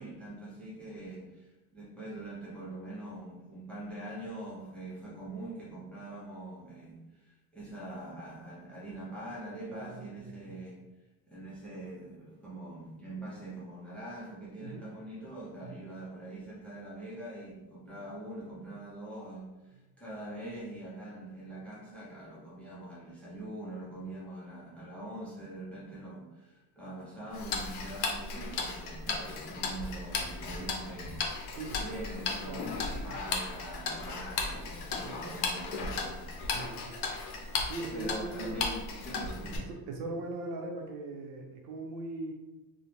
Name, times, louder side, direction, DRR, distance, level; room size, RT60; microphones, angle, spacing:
voice 1, 0.0-10.8 11.3-31.5 31.7-36.3 37.9-39.7, right 1 dB, 5° left, -7 dB, 0.4 m, -43 dB
voice 2, 9.7-10.6 14.6-14.8 15.6-15.8 31.6-31.8 32.5-33.1 35.0-35.3 36.5-37.0 37.7-38.6 39.7-42.3, right 2 dB, 80° right, 2 dB, 0.7 m, -40 dB
Tick-tock, 27.3-39.6, left 4 dB, 70° left, 0.6 m, -36 dB
2.5 x 2.1 x 2.9 m, 1.1 s
cardioid pair, 155°, 41 cm